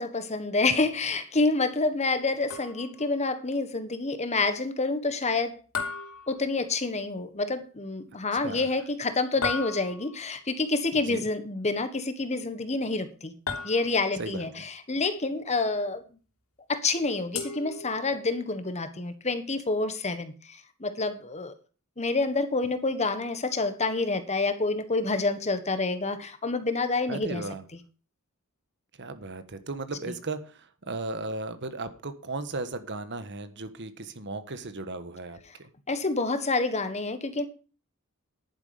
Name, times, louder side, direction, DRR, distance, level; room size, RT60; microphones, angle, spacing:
voice 1, 0.0-5.6 6.3-13.3 13.6-16.0 16.7-21.5 22.0-27.4 35.9-37.5, left 3 dB, 30° left, 1.4 m, -28 dB
sound 1, 2.5-3.1 5.7-7.0 9.4-10.3 13.5-14.3 17.3-18.4, left 5 dB, 70° left, 3.1 m, -36 dB
voice 2, 8.3-8.7 11.0-11.3 14.2-14.5 27.1-27.6 29.0-35.7, right 2 dB, 55° right, 1.4 m, -36 dB
11.0 x 9.8 x 5.0 m
head